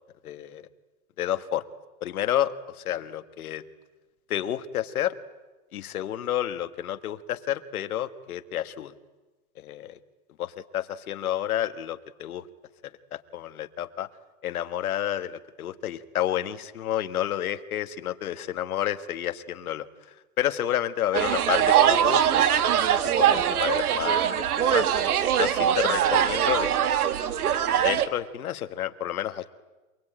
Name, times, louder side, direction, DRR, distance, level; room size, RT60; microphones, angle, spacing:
voice 1, 0.2-0.6 1.2-1.6 2.0-3.6 4.3-5.1 5.7-8.9 9.6-10.0 10.4-12.5 13.1-14.1 14.4-19.9 20.4-24.9 25.3-26.7 27.7-29.5, left 11 dB, 65° left, 10 dB, 1.7 m, -30 dB
sound 1, 21.1-28.1, right 9 dB, 70° right, 1.8 m, -22 dB
27.5 x 21.0 x 9.0 m, 1.2 s
supercardioid pair, 180°, 46 cm